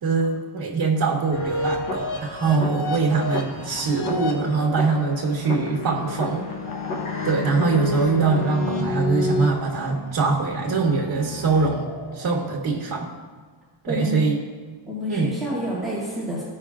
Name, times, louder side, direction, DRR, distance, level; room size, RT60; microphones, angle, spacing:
voice 1, 0.0-6.5 7.2-13.1 13.8-14.4 15.1-15.3, right 4 dB, 45° right, -2 dB, 1.1 m, -23 dB
sound 1, 1.3-12.3, left 3 dB, 85° left, 1.1 m, -30 dB
voice 2, 13.9-14.3 14.9-16.4, equal, ahead, -8 dB, 2.0 m, -28 dB
14.5 x 5.3 x 2.4 m, 1.5 s
cardioid pair, 135°, 48 cm